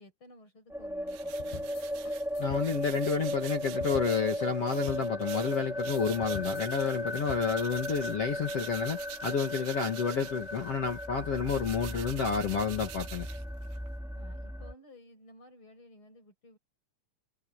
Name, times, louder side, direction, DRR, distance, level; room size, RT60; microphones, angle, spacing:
voice 1, 0.0-1.7 14.1-16.6, left 1 dB, 25° left, 6.1 m, -55 dB
sound 1, 0.7-14.7, equal, ahead, 1.8 m, -36 dB
sound 2, 1.1-8.2 8.4-13.9, right 13 dB, 90° right, 3.7 m, -48 dB
sound 3, 1.4-8.1, left 7 dB, 75° left, 5.3 m, -47 dB
voice 2, 2.4-13.3, left 5 dB, 45° left, 2.1 m, -30 dB
omnidirectional pair, 5.2 m